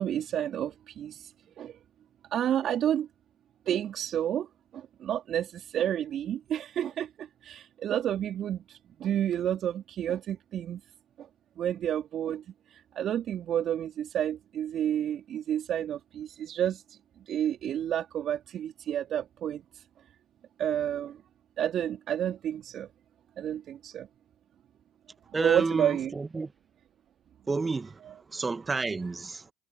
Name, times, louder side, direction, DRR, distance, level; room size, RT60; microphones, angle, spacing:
voice 1, 0.0-1.8 2.3-3.1 3.7-4.5 4.7-10.8 11.2-11.3 11.6-17.0 17.3-19.8 20.6-21.2 21.6-22.9 23.4-24.1 25.4-26.1, right 10 dB, 50° right, 4.1 m, -30 dB
voice 2, 25.3-26.5 27.5-28.0 28.3-29.5, right 3 dB, 20° right, 1.8 m, -30 dB
hypercardioid pair, 70°, 0 cm